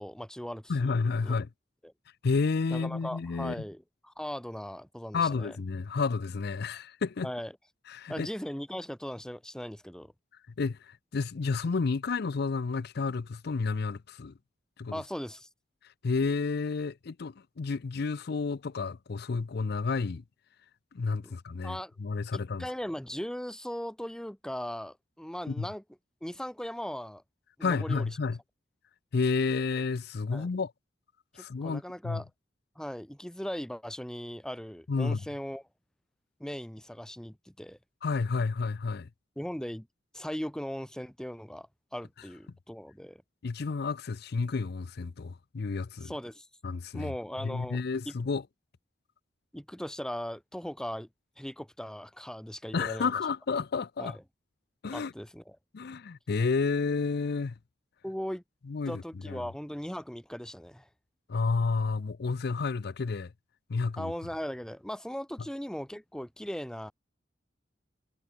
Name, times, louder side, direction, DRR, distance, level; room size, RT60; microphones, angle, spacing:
voice 1, 0.0-0.9 1.2-1.3 1.8-1.9 2.7-5.6 7.2-7.5 8.1-10.1 14.9-15.5 21.2-21.3 21.6-21.9 22.3-25.8 26.2-27.2 27.6-28.1 30.3-30.5 31.3-32.3 32.8-35.6 36.4-37.8 39.4-39.9 40.1-43.2 46.0-46.5 46.9-48.1 49.5-51.1 51.4-53.1 54.0-54.1 54.9-55.6 58.0-58.4 58.9-60.9 64.0-66.9, equal, 5° left, 0.6 m, -38 dB
voice 2, 0.7-1.5 2.2-3.6 5.1-7.3 7.9-8.3 10.6-14.3 14.8-15.0 16.0-20.2 20.9-22.7 25.5-25.7 27.6-28.4 29.1-30.7 31.4-32.2 34.9-35.2 38.0-39.1 43.4-46.1 46.6-47.1 47.4-48.4 52.7-54.2 54.8-55.1 55.7-57.6 58.7-59.4 61.3-63.3 63.7-64.1, left 4 dB, 60° left, 0.5 m, -31 dB
head